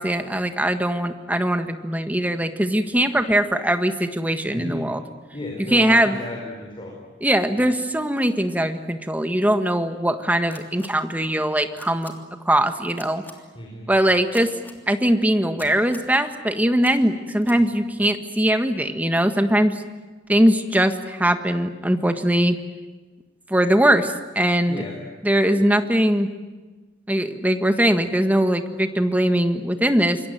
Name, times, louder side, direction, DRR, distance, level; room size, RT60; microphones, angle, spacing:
voice 1, 0.0-5.0 5.7-6.2 7.2-12.1 12.4-13.2 13.9-14.5 14.9-19.8 20.3-22.6 23.5-24.8 25.2-26.3 27.1-30.2, right 1 dB, 10° right, 7 dB, 1.6 m, -21 dB
voice 2, 4.4-4.8 5.3-7.0 13.5-13.9 24.7-25.0, left 1 dB, 30° left, -1 dB, 5.0 m, -33 dB
sound 1, 10.5-10.9 11.8-12.1 13.0-13.3 14.3-14.8 15.6-16.1 16.8-16.9 17.4-17.6, left 2 dB, 10° left, 3.1 m, -42 dB
27.0 x 22.5 x 9.3 m, 1.3 s
head